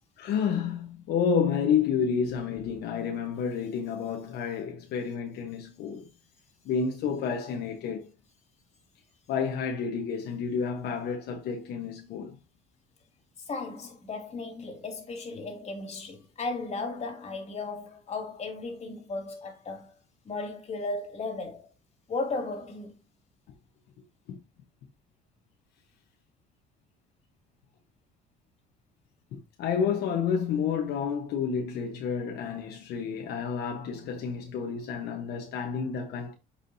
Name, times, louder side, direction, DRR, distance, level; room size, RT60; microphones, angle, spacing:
voice 1, 0.2-6.1 6.6-8.1 9.3-12.4 24.3-24.4 29.3-36.3, left 6 dB, 75° left, 1.1 m, -30 dB
voice 2, 13.5-19.9 20.2-21.7 22.1-22.9, left 3 dB, 40° left, 2.6 m, -35 dB
7.7 x 4.9 x 2.7 m
cardioid pair, 110°, 17 cm